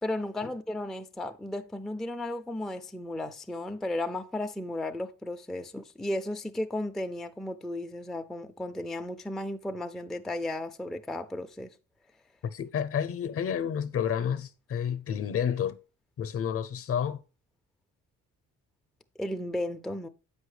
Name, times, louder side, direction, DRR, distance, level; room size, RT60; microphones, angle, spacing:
voice 1, 0.0-11.7 19.2-20.1, left 1 dB, ahead, 0.3 m, -34 dB
voice 2, 12.4-15.8 16.2-17.2, left 8 dB, 50° left, 0.6 m, -30 dB
7.8 x 5.5 x 3.2 m
cardioid pair, 90°, 30 cm